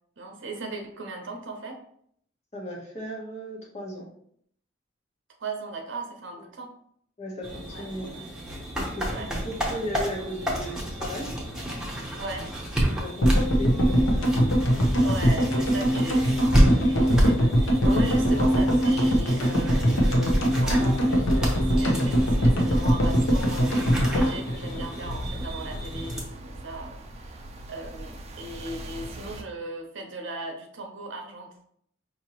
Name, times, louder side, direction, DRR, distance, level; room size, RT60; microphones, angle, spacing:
voice 1, 0.2-1.8 5.4-6.7 7.7-8.3 9.1-9.3 12.2-12.5 15.0-23.8 24.1-27.1 27.7-31.7, right 2 dB, 65° right, 3 dB, 0.8 m, -37 dB
voice 2, 2.5-4.1 7.2-8.3 8.7-11.3 12.9-14.4 16.7-16.8, equal, 35° left, -3 dB, 1.1 m, -36 dB
sound 1, 7.4-26.2, equal, 5° right, 1.0 m, -30 dB
sound 2, 13.2-25.4 25.7-25.8 25.9-26.0, equal, 80° left, 0.8 m, -22 dB
sound 3, 20.2-29.4, right 1 dB, 35° right, 0.5 m, -42 dB
5.4 x 2.9 x 3.0 m, 0.67 s
head